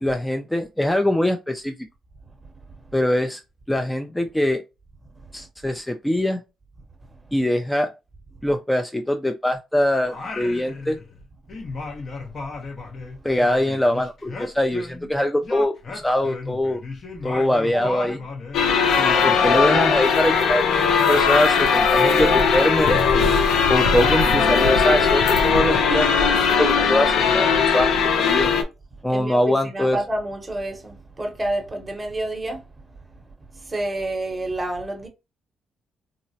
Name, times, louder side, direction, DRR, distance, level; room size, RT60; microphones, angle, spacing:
voice 1, 0.0-1.9 2.9-3.4 3.7-4.6 5.3-6.4 7.3-7.9 8.4-11.0 13.2-16.8 17.2-18.2 19.0-23.3 23.7-27.9 28.2-28.5 29.0-30.0, left 1 dB, 10° left, 0.3 m, -23 dB
Singing, 10.1-11.2 11.5-15.1 15.4-18.6, left 3 dB, 45° left, 0.8 m, -35 dB
voice 2, 17.7-18.2 29.1-32.6 33.5-35.1, right 1 dB, 20° right, 0.8 m, -29 dB
sound 1, 18.5-28.6, left 5 dB, 80° left, 0.6 m, -19 dB
3.8 x 2.0 x 2.7 m
cardioid pair, 90°, 0 cm